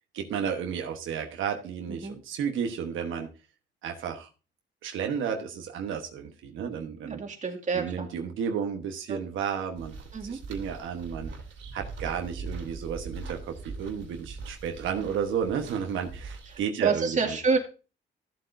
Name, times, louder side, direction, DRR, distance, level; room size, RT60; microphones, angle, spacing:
voice 1, 0.1-3.3 3.8-4.3 4.8-7.2 7.7-11.3 11.7-17.4, right 7 dB, 85° right, 4 dB, 1.2 m, -32 dB
voice 2, 1.9-2.2 7.0-8.1 9.1-9.2 10.1-10.4 16.8-17.6, right 4 dB, 40° right, 3 dB, 2.1 m, -28 dB
sound 1, 9.8-16.6, right 4 dB, 70° right, 2.5 m, -41 dB
13.5 x 7.9 x 2.6 m, 0.33 s
cardioid pair, 95°, 20 cm